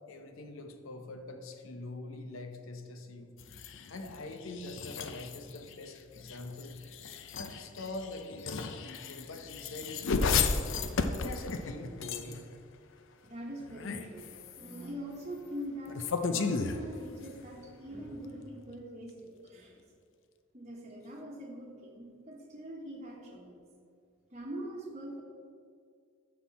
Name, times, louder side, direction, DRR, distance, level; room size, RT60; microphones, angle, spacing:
voice 1, 0.1-3.3 3.9-6.8 7.3-10.6 11.1-12.5, left 2 dB, 90° left, 5 dB, 0.9 m, -44 dB
sound 1, 3.4-12.6 13.6-14.9 15.9-17.5, left 5 dB, 65° left, 0.5 m, -35 dB
voice 2, 13.2-19.8 20.5-23.6 24.3-25.2, equal, 35° right, -4 dB, 1.2 m, -43 dB
13.0 x 4.4 x 4.2 m, 2.3 s
head